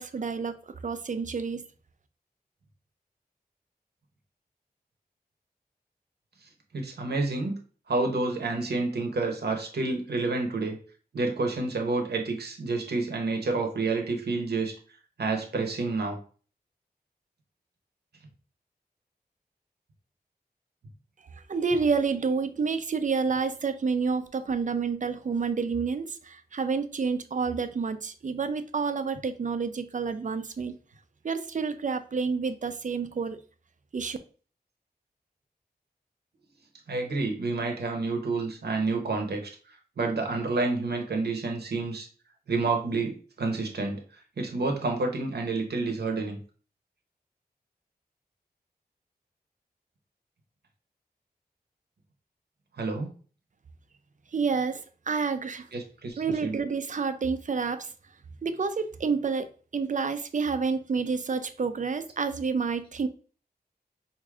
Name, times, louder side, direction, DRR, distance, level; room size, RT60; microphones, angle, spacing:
voice 1, 0.0-1.6 21.5-30.8 31.2-33.4 33.9-34.2 54.3-55.7 56.2-57.9 58.4-59.5 59.7-63.1, right 5 dB, 50° right, 0.4 m, -29 dB
voice 2, 6.7-7.6 7.9-10.8 11.1-14.7 15.2-16.2 36.9-42.1 42.5-44.0 44.4-46.4 52.8-53.1 55.7-56.6, right 3 dB, 90° right, 0.8 m, -29 dB
4.8 x 2.6 x 2.4 m
wide cardioid pair, 65°, 16 cm